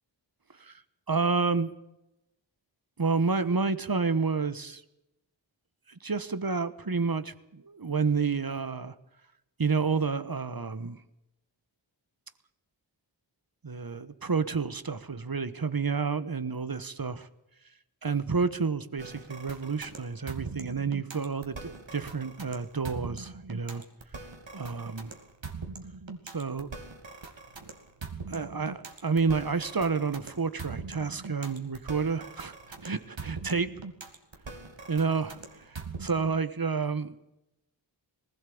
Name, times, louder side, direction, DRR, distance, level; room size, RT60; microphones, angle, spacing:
voice 1, 1.1-1.7 3.0-4.8 5.9-8.9 9.6-11.0 13.6-17.3 18.0-23.8 24.5-25.1 26.3-26.7 28.3-32.5 32.8-33.7 34.9-37.3, right 4 dB, 50° right, 13 dB, 1.3 m, -30 dB
sound 1, 19.0-36.4, right 4 dB, 75° right, 2.7 m, -42 dB
19.5 x 16.0 x 8.6 m, 0.88 s
wide cardioid pair, 45°, 45 cm